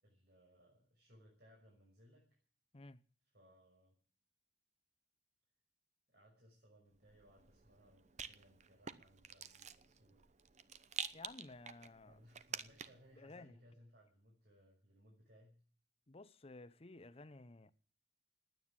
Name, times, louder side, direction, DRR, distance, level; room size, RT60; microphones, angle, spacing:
voice 1, 0.0-2.2 3.3-3.9 6.1-10.3 12.0-15.6, equal, 60° right, 6.0 m, -65 dB
Rattle, 7.0-13.1, right 7 dB, 40° right, 0.8 m, -49 dB
voice 2, 11.1-12.2 13.2-13.5 16.1-17.7, left 2 dB, 35° left, 0.8 m, -54 dB
19.5 x 9.4 x 7.4 m
head